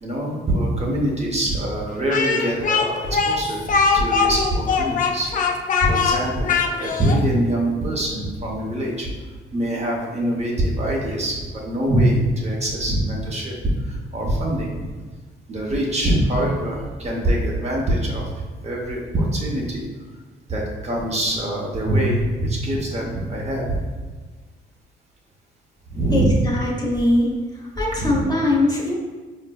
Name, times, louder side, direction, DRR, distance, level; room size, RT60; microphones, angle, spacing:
voice 1, 0.0-5.3 5.8-6.5 6.8-9.1 9.5-13.5 13.8-14.9 15.5-19.8 20.5-23.8 25.9-26.4 27.9-28.2, right 1 dB, 35° right, -2 dB, 0.8 m, -23 dB
Speech, 2.1-7.2, left 5 dB, 45° left, 0.4 m, -21 dB
voice 2, 26.1-27.3 27.8-28.9, left 1 dB, 20° left, -4 dB, 0.8 m, -21 dB
4.7 x 2.6 x 2.3 m, 1.4 s
cardioid pair, 90°, 20 cm